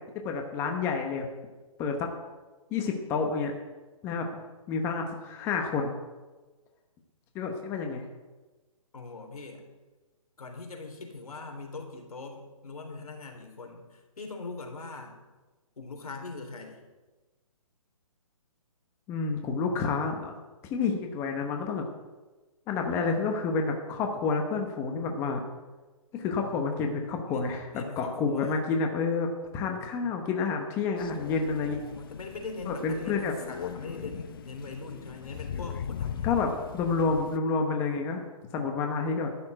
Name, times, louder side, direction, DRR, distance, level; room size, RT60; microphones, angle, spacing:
voice 1, 0.2-1.3 1.8-2.1 2.7-3.5 4.0-4.3 4.7-5.9 7.3-8.0 19.1-20.3 20.7-21.8 22.7-25.4 26.1-27.7 28.0-29.3 29.5-31.8 32.7-33.3 36.2-38.2 38.5-39.3, left 4 dB, 15° left, 3 dB, 0.9 m, -29 dB
voice 2, 8.9-9.7 10.4-15.2 15.8-16.8 26.3-26.8 27.3-28.6 30.0-30.2 31.7-36.6, left 3 dB, 85° left, 4 dB, 3.6 m, -42 dB
Crow, 31.0-37.4, left 8 dB, 40° left, 0.6 m, -39 dB
12.0 x 7.1 x 8.8 m, 1.2 s
hypercardioid pair, 160°, 18 cm